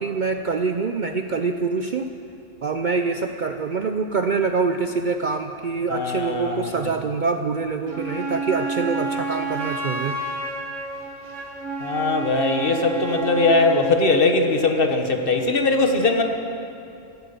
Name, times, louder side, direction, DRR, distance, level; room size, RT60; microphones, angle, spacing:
voice 1, 0.0-2.1 2.6-10.4, right 4 dB, 50° right, 7 dB, 0.6 m, -25 dB
voice 2, 5.9-6.8 11.8-16.2, left 3 dB, 50° left, 4 dB, 1.4 m, -20 dB
Wind instrument woodwind instrument, 7.9-13.9, right 3 dB, 70° right, 2.0 m, -30 dB
16.5 x 13.0 x 6.8 m, 2.7 s
omnidirectional pair, 1.3 m